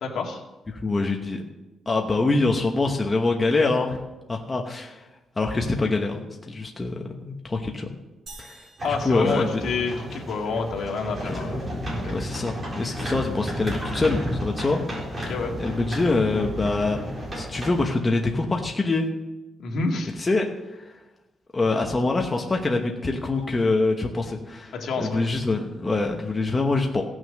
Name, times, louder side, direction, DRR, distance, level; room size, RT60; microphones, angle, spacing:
voice 1, 0.0-0.4 8.8-11.7 12.0-12.1 15.3-15.5 19.6-20.1 24.7-25.2, left 4 dB, 65° left, 1 dB, 2.0 m, -28 dB
voice 2, 0.7-1.4 1.9-4.0 4.3-5.0 5.4-6.2 6.5-7.9 8.4-9.5 11.3-11.4 12.1-14.8 15.6-17.0 17.3-19.1 20.2-20.5 20.8-20.9 21.5-27.0, left 3 dB, 20° left, 2 dB, 1.0 m, -24 dB
sound 1, 8.3-10.2, right 3 dB, 50° right, 5.1 m, -48 dB
sound 2, 8.8-17.8, equal, 25° right, 4.1 m, -32 dB
16.0 x 6.3 x 6.4 m, 1.1 s
cardioid pair, 155°, 0 cm